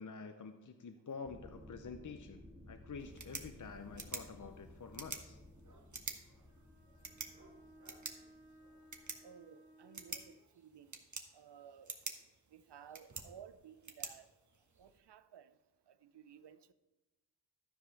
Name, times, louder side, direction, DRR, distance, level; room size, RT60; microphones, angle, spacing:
voice 1, 0.0-5.4, left 5 dB, 45° left, 0.7 m, -48 dB
sound 1, 1.3-9.0, left 1 dB, 5° right, 1.7 m, -57 dB
sound 2, 3.0-15.0, right 4 dB, 45° right, 1.2 m, -49 dB
Bowed string instrument, 6.5-10.4, equal, 90° left, 2.4 m, -61 dB
voice 2, 9.2-11.0 11.3-12.0 12.5-14.3 14.8-15.5 15.9-16.7, right 8 dB, 75° right, 0.6 m, -56 dB
13.0 x 4.9 x 5.7 m
wide cardioid pair, 65°, 41 cm